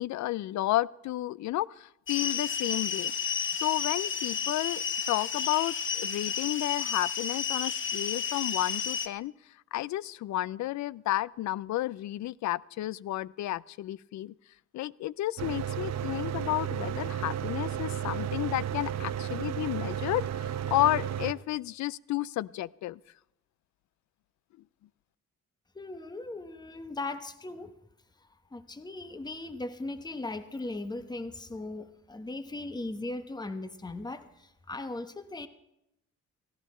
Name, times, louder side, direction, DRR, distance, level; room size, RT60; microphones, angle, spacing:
voice 1, 0.0-3.1 3.5-9.3 9.7-14.3 14.7-23.0, left 15 dB, 70° left, 23 dB, 0.5 m, -32 dB
sound 1, 2.1-9.1, left 7 dB, 40° left, 1.1 m, -32 dB
Mechanical fan, 15.4-21.3, right 9 dB, 60° right, 0.9 m, -33 dB
voice 2, 25.7-27.7 28.5-35.5, left 2 dB, 15° left, 10 dB, 1.1 m, -38 dB
17.5 x 15.5 x 4.3 m, 0.86 s
cardioid pair, 90°, 30 cm